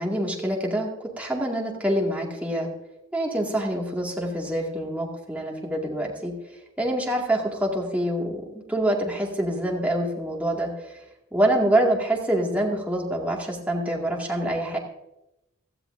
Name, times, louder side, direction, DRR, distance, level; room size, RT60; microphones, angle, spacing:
voice 1, 0.0-2.7 3.1-6.3 6.8-10.7 11.3-14.8, right 1 dB, 5° right, -2 dB, 2.1 m, -26 dB
17.0 x 13.0 x 2.6 m, 0.90 s
head